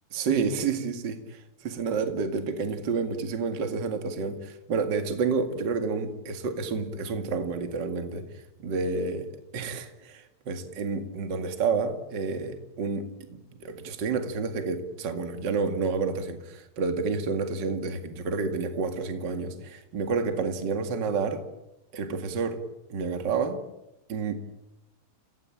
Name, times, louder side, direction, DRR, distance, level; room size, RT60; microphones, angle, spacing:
voice 1, 0.1-8.2 8.6-9.3 9.5-21.4 21.9-22.6 22.9-23.6 24.1-24.3, right 4 dB, 40° right, 7 dB, 1.8 m, -29 dB
29.0 x 17.0 x 8.8 m, 0.94 s
omnidirectional pair, 4.9 m